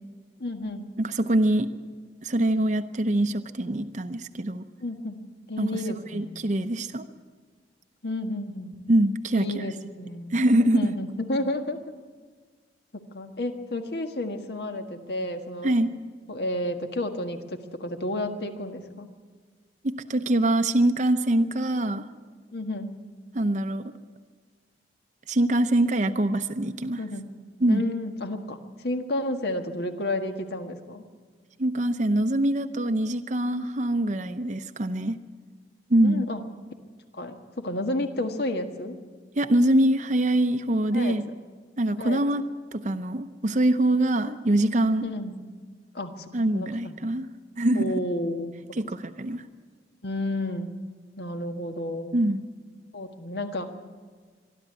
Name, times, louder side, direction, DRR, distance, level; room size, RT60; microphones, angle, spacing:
voice 1, 0.4-0.9 4.8-5.2 5.5-6.4 8.0-8.7 9.3-10.4 10.7-11.8 12.9-15.7 16.3-19.1 22.5-22.9 27.0-27.3 27.7-28.6 28.8-31.0 36.0-36.4 37.1-39.0 40.9-41.2 42.0-42.2 45.0-45.4 45.9-46.9 47.7-48.5 50.0-50.7 51.2-52.2 52.9-53.7, left 1 dB, 65° left, 6 dB, 1.6 m, -31 dB
voice 2, 1.0-1.7 2.2-4.7 5.6-5.8 6.1-7.1 8.9-9.7 10.3-10.9 15.6-15.9 19.8-22.1 23.3-23.9 25.3-27.0 27.6-27.8 31.6-35.2 35.9-36.2 39.4-41.2 41.8-42.4 42.7-45.1 46.3-47.3 47.6-47.9 48.8-49.4 52.1-52.4, right 1 dB, 45° right, 8 dB, 0.7 m, -24 dB
23.5 x 12.0 x 9.6 m, 1.5 s
head